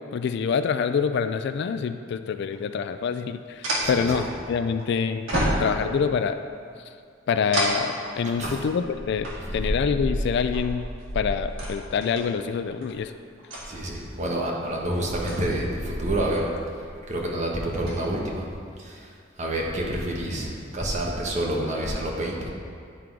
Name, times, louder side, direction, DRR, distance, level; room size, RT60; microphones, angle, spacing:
voice 1, 0.1-5.3 5.6-6.4 7.3-10.9 11.1-13.1, left 6 dB, 60° left, 9 dB, 0.3 m, -26 dB
sound 1, 2.5-2.6 3.6-4.8 5.3-6.1 7.5-12.2 12.8-13.0 13.4-14.1 14.8-16.5 16.8-17.2 17.6-18.1, equal, 85° right, 1.7 m, -30 dB
voice 2, 3.8-4.3 8.4-8.6 9.5-9.6 13.6-16.5 17.1-18.5 18.8-19.1 19.4-22.5, right 1 dB, 40° right, -2 dB, 1.1 m, -28 dB
10.0 x 3.8 x 4.6 m, 2.3 s
head